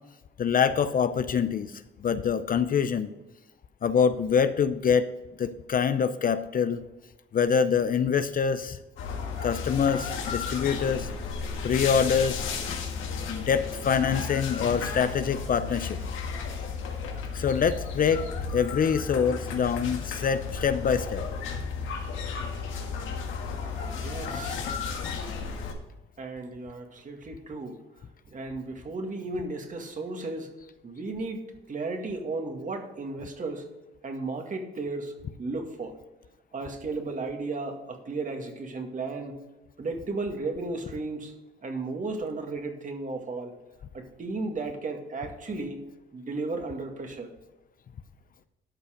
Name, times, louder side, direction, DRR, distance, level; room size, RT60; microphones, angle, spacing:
voice 1, 0.4-1.7 2.0-3.1 3.8-5.1 5.4-6.8 7.3-8.8 9.4-11.1 11.6-12.5 13.3-16.0 17.3-18.2 18.5-21.2, left 7 dB, 45° left, 12 dB, 0.6 m, -25 dB
sound 1, 9.0-25.7, left 5 dB, 80° left, 1.7 m, -34 dB
voice 2, 23.9-24.6 26.2-27.8 28.3-30.5 30.8-33.7 34.0-35.1 35.4-35.9 36.5-39.4 39.8-41.3 41.6-43.5 43.9-45.8 46.1-47.3, right 3 dB, 40° right, 4 dB, 2.0 m, -34 dB
12.5 x 5.6 x 5.1 m, 1.0 s
cardioid pair, 90°, 20 cm